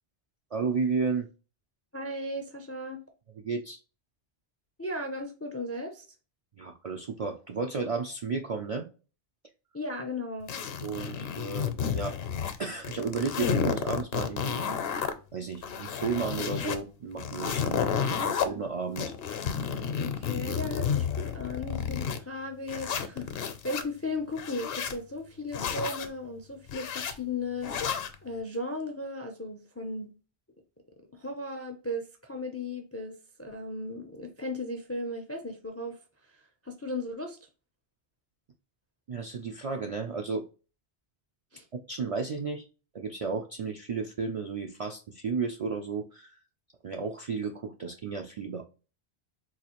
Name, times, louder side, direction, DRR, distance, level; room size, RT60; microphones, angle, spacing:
voice 1, 0.5-1.3 3.4-3.8 6.5-8.9 10.8-12.2 12.6-14.6 14.9-19.1 20.3-20.4 39.1-40.4 41.7-42.7 42.9-46.4 46.8-48.7, right 4 dB, 60° right, 0.4 m, -33 dB
voice 2, 1.9-3.0 4.8-6.1 9.7-10.5 20.0-27.7 28.2-30.1 31.1-36.0 36.6-37.4 41.5-41.7, left 2 dB, 25° left, 0.3 m, -36 dB
sound 1, 10.5-12.6 12.8-15.1 15.5-16.8 17.2-18.5 19.0-22.2 22.7-23.8 24.3-25.0 25.5-26.1 26.7-27.1 27.6-28.1, left 7 dB, 65° left, 0.8 m, -31 dB
4.0 x 2.4 x 2.9 m
omnidirectional pair, 1.1 m